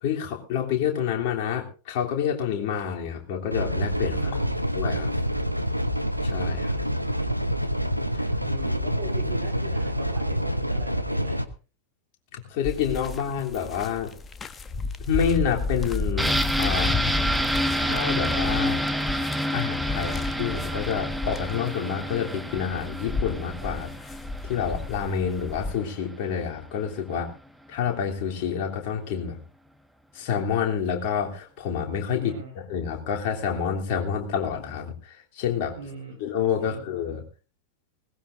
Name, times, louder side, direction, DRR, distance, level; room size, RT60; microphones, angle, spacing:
voice 1, 0.0-4.3 4.7-5.1 6.2-6.8 8.1-8.2 12.3-14.1 15.1-17.0 17.7-18.8 19.5-23.9 24.4-27.3 27.7-29.4 30.1-35.7 36.2-37.2, left 7 dB, 45° left, 1 dB, 3.2 m, -28 dB
sound 1, 3.5-11.5, equal, 90° right, 1.0 m, -27 dB
voice 2, 4.1-4.6 8.4-11.4 27.1-27.2 32.1-32.5 35.7-36.2 36.6-36.9, right 4 dB, 60° right, 2 dB, 4.0 m, -40 dB
sound 2, 12.6-25.7, left 4 dB, 20° left, 1.1 m, -32 dB
sound 3, 16.2-25.8 26.1-26.2, equal, 5° right, 1.1 m, -28 dB
20.5 x 18.5 x 2.6 m, 0.35 s
figure-of-eight pair, 90°, 0 cm